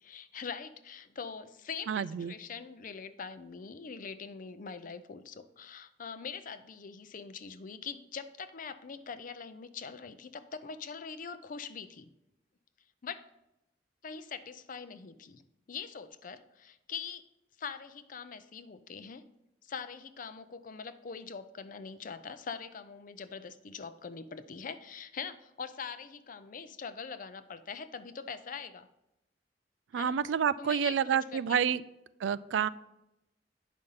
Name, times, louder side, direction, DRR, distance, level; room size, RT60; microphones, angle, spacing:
voice 1, 0.0-12.1 13.0-13.2 14.0-15.4 15.7-17.3 17.6-19.2 19.6-28.9 30.0-30.2 30.6-31.4 31.7-31.8, left 6 dB, 50° left, 13 dB, 0.5 m, -43 dB
voice 2, 1.9-2.3 29.9-31.8 32.2-32.7, right 7 dB, 90° right, 16 dB, 0.3 m, -29 dB
9.2 x 5.1 x 5.6 m, 0.90 s
head